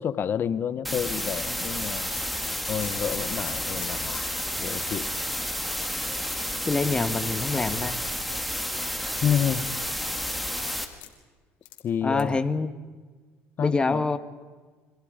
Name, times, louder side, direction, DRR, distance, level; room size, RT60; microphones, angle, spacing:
voice 1, 0.0-2.1 2.7-4.3 4.6-5.1 9.2-9.6 11.8-12.4 13.6-14.1, left 8 dB, 45° left, 14 dB, 1.1 m, -29 dB
sound 1, 0.8-10.8, equal, ahead, 2.2 m, -31 dB
sound 2, 1.6-4.3 4.7-4.8 5.6-6.8 7.4-7.6 8.1-8.9 10.2-11.1 11.6-11.8 12.1-12.3, left 16 dB, 90° left, 3.2 m, -44 dB
voice 2, 6.6-8.0 12.0-12.7 13.6-14.2, left 3 dB, 20° left, 10 dB, 1.4 m, -25 dB
30.0 x 25.0 x 5.2 m, 1.4 s
cardioid pair, 110°, 5 cm